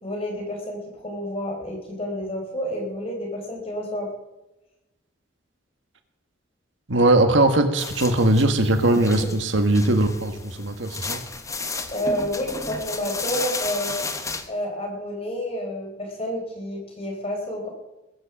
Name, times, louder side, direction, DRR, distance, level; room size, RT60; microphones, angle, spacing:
voice 1, 0.0-4.1 11.9-14.0 14.5-17.7, equal, 30° left, 1 dB, 4.2 m, -29 dB
voice 2, 6.9-11.2, right 2 dB, 85° right, 7 dB, 1.7 m, -20 dB
sound 1, 7.8-14.5, left 3 dB, 15° left, 1.0 m, -33 dB
20.5 x 7.8 x 7.3 m, 1.0 s
head